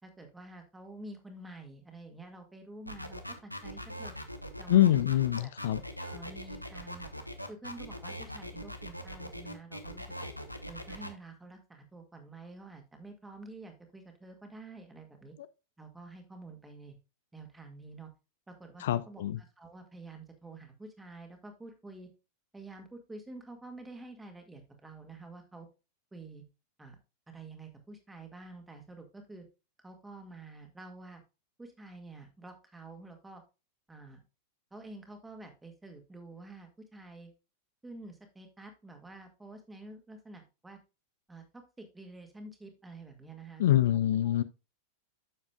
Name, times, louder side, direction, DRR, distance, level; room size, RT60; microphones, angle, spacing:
voice 1, 0.0-4.2 4.6-4.9 5.4-5.5 6.0-7.1 7.5-10.3 10.7-15.3 15.8-17.0 17.3-18.1 18.5-22.1 22.5-25.7 26.1-26.4 26.8-27.0 27.3-29.5 29.8-31.2 31.6-33.4 33.9-34.2 34.7-37.3 37.8-40.8 41.3-44.4, right 2 dB, 10° right, 2.1 m, -49 dB
sound 1, 2.9-11.1, equal, 90° left, 1.0 m, -41 dB
voice 2, 4.7-5.8 18.8-19.4 43.6-44.4, left 12 dB, 60° left, 0.4 m, -25 dB
10.0 x 7.3 x 2.4 m
figure-of-eight pair, 90°, 0 cm